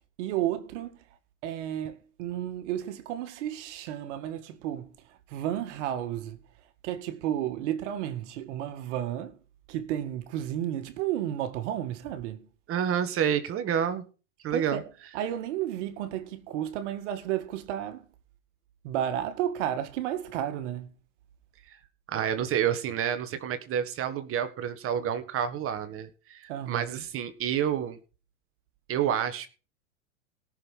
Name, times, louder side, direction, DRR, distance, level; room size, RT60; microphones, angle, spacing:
voice 1, 0.2-1.0 1.4-6.4 6.8-9.4 9.7-12.5 14.5-14.9 15.1-18.1 18.8-20.9 26.5-27.0, right 11 dB, 65° right, 2.0 m, -32 dB
voice 2, 12.7-14.0 14.4-14.8 21.7-21.8 22.1-28.0 28.9-29.5, right 9 dB, 35° right, 1.6 m, -29 dB
17.5 x 6.6 x 5.6 m
hypercardioid pair, 115°, 39 cm